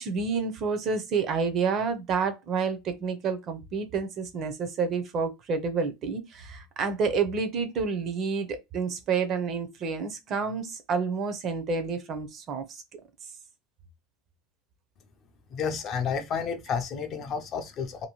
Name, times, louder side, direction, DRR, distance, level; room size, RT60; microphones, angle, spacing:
voice 1, 0.0-13.0, right 5 dB, 30° right, 0.5 m, -29 dB
voice 2, 15.5-18.1, left 6 dB, 30° left, 0.4 m, -31 dB
2.7 x 2.5 x 2.9 m
cardioid pair, 180°, 0 cm